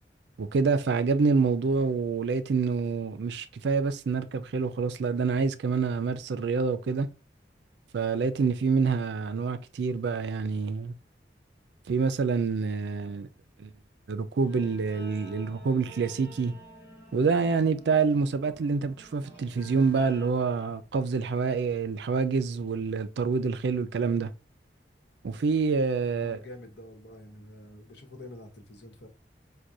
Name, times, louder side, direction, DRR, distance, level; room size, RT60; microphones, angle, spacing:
voice 1, 0.4-7.1 7.9-10.9 11.9-13.3 13.6-13.7 14.1-16.5 17.1-24.3 25.2-26.4, right 4 dB, 75° right, 0.4 m, -27 dB
Guitar, 14.4-20.3, right 1 dB, 15° right, 1.0 m, -49 dB
voice 2, 26.0-29.1, left 1 dB, 75° left, 1.0 m, -47 dB
4.7 x 2.2 x 2.6 m
head